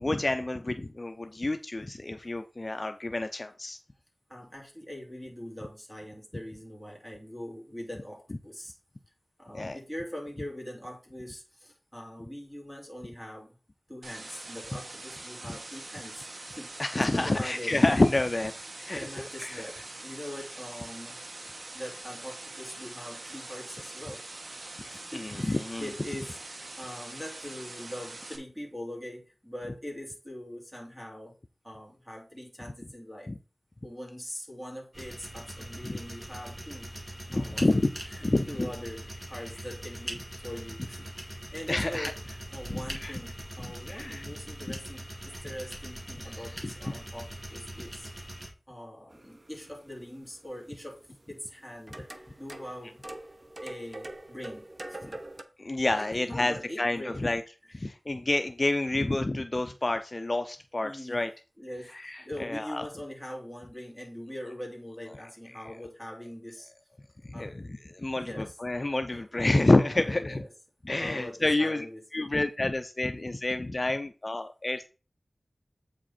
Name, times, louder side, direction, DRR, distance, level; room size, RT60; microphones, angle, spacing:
voice 1, 0.0-3.8 9.5-9.8 16.8-19.6 25.1-25.9 33.3-33.4 35.8-35.9 37.3-37.9 38.2-38.7 41.7-42.1 42.7-43.2 43.6-44.3 44.7-44.8 55.6-57.4 57.7-61.3 61.9-62.8 67.2-70.5 70.8-71.9 72.1-74.9, left 2 dB, 40° left, 8 dB, 0.5 m, -28 dB
voice 2, 4.3-8.7 9.4-13.6 13.9-16.8 17.1-17.8 18.9-21.2 21.7-24.2 24.9-31.3 31.6-33.3 33.8-36.9 37.3-37.8 38.1-41.1 41.5-48.1 48.7-51.0 51.3-52.1 52.4-53.0 53.6-55.2 55.9-57.3 60.7-61.2 61.6-66.7 67.3-67.6 68.2-68.5 69.1-69.4 69.9-70.5 71.0-72.0, left 1 dB, 5° right, 0 dB, 3.0 m, -42 dB
sound 1, 14.0-28.4, right 2 dB, 70° right, 1.5 m, -43 dB
sound 2, 34.9-48.5, right 1 dB, 25° right, 2.3 m, -42 dB
sound 3, 49.1-55.4, right 1 dB, 40° right, 0.9 m, -45 dB
8.1 x 5.1 x 4.3 m, 0.34 s
wide cardioid pair, 65°, 0 cm